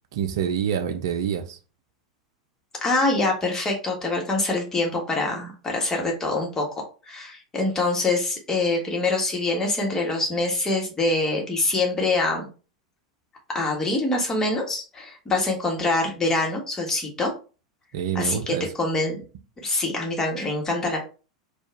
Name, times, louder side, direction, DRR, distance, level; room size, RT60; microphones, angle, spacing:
voice 1, 0.1-1.6 17.9-18.6, right 8 dB, 55° right, 0.6 m, -27 dB
voice 2, 2.8-6.7 7.1-12.5 13.5-17.3 18.1-19.2 19.6-21.0, left 2 dB, 20° left, 1.4 m, -25 dB
4.4 x 2.5 x 3.3 m
figure-of-eight pair, 85°, 3 cm